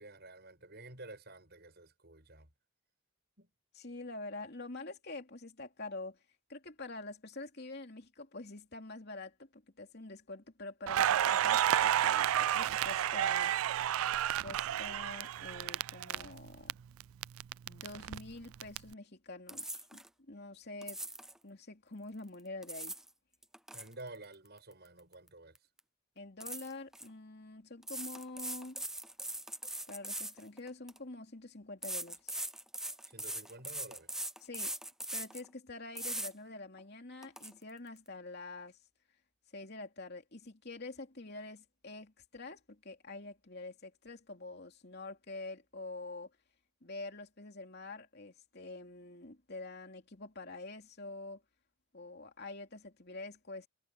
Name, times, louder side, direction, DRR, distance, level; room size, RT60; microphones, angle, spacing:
voice 1, 0.0-2.5 3.4-3.5 16.7-16.8 23.7-25.6 33.0-34.1, right 2 dB, 50° right, 7.2 m, -51 dB
voice 2, 3.7-6.2 6.5-13.5 14.4-16.7 17.7-21.0 21.4-23.0 26.2-28.8 29.9-32.4 34.4-34.7 35.1-38.8 39.5-46.3 46.8-51.4 51.9-53.7, left 2 dB, 50° left, 3.0 m, -46 dB
Crackle, 10.9-16.7 17.0-18.8, right 11 dB, 80° right, 0.3 m, -31 dB
sound 1, 19.5-20.1 20.8-21.4 22.4-23.1 23.4-25.3 25.6-25.8 26.4-27.1 27.8-31.0 31.8-35.5 36.0-36.3 36.8-36.9 37.2-37.5, right 1 dB, ahead, 0.5 m, -41 dB
head